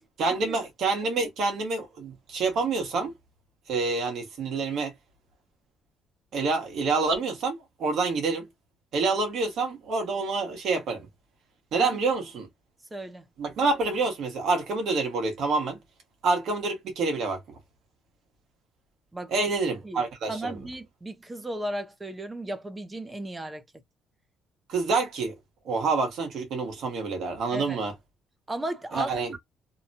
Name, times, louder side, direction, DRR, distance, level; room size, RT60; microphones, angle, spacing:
voice 1, 0.2-3.1 3.7-4.9 6.3-8.5 8.9-11.1 11.7-12.5 13.4-15.8 16.2-17.4 19.3-20.6 24.7-25.3 25.6-27.9 28.9-29.3, right 3 dB, 50° right, 1.2 m, -27 dB
voice 2, 12.9-13.2 19.1-19.5 19.8-23.6 27.5-27.8 28.5-29.4, right 1 dB, 10° right, 0.4 m, -35 dB
2.9 x 2.2 x 2.6 m
cardioid pair, 165°, 0 cm